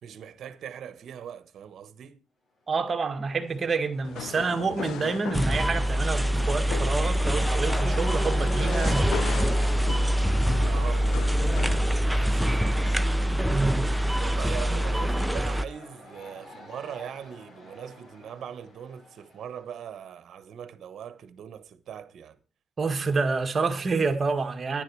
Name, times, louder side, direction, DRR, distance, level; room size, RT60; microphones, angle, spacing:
voice 1, 0.0-2.2 10.7-12.8 14.2-22.4, right 8 dB, 65° right, 1.2 m, -41 dB
voice 2, 2.7-9.4 13.5-13.9 22.8-24.8, right 4 dB, 35° right, 1.8 m, -28 dB
Cheering / Crowd, 2.9-19.8, left 1 dB, 45° left, 5.0 m, -45 dB
sound 1, 4.0-11.9, left 10 dB, 80° left, 0.6 m, -39 dB
sound 2, 5.3-15.7, equal, 5° right, 0.6 m, -24 dB
10.5 x 10.5 x 4.7 m
cardioid pair, 90°, 0 cm